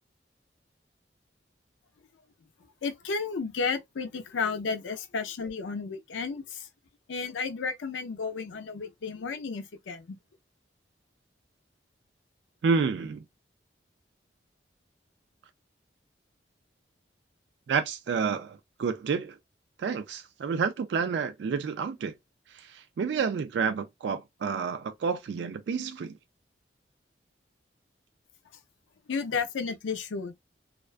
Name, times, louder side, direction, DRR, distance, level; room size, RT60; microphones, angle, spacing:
voice 1, 2.8-6.7 7.1-10.2 29.1-30.3, left 5 dB, 90° left, 0.5 m, -32 dB
voice 2, 12.6-13.2 17.7-19.4 19.8-22.1 22.5-26.2, right 5 dB, 70° right, 0.3 m, -29 dB
2.4 x 2.2 x 2.3 m
head